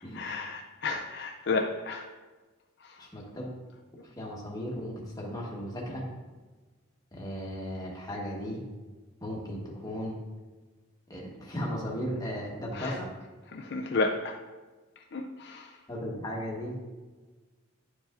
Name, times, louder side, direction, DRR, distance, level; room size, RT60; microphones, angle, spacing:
voice 1, 0.1-2.1 2.8-3.0 12.7-13.0 13.5-14.4 15.1-15.7, left 3 dB, 50° left, 2 dB, 0.4 m, -32 dB
voice 2, 3.0-3.5 4.2-6.1 7.1-8.6 9.2-10.2 11.1-13.1 15.9-16.8, equal, 15° left, -3 dB, 1.2 m, -36 dB
10.5 x 4.8 x 2.5 m, 1.3 s
head